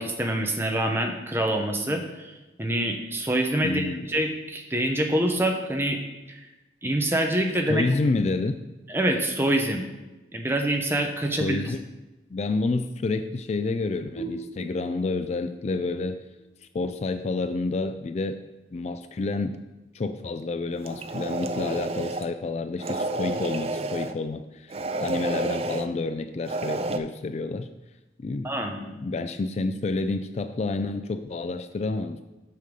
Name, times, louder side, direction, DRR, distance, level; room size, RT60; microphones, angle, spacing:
voice 1, 0.0-2.3 2.6-6.0 6.3-6.4 6.8-7.9 8.9-9.8 10.3-11.6 28.4-28.8, right 1 dB, 15° right, 3 dB, 0.8 m, -25 dB
voice 2, 3.6-4.1 7.7-8.6 11.4-11.8 12.3-16.2 16.7-18.4 18.7-19.6 19.9-27.7 28.2-28.5 28.8-32.2, left 3 dB, 40° left, 10 dB, 0.3 m, -29 dB
sound 1, 14.1-17.5, right 3 dB, 80° left, 3.3 m, -42 dB
sound 2, 20.8-22.3 22.8-24.1 24.7-25.9 26.4-27.0, right 2 dB, 35° right, 0.4 m, -30 dB
6.7 x 6.4 x 5.2 m, 1.1 s
head